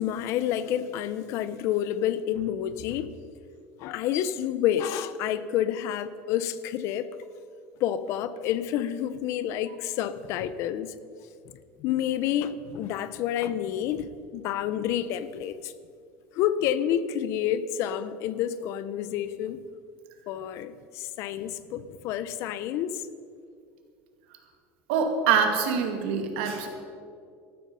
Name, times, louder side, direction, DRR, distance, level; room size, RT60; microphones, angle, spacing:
voice 1, 0.0-3.1 3.8-7.1 7.8-10.9 11.8-15.7 16.3-19.6 20.3-23.0, left 10 dB, 50° left, 0.7 m, -29 dB
voice 2, 24.9-26.7, right 6 dB, 80° right, 2.3 m, -24 dB
14.0 x 13.0 x 5.5 m
cardioid pair, 160°, 6 cm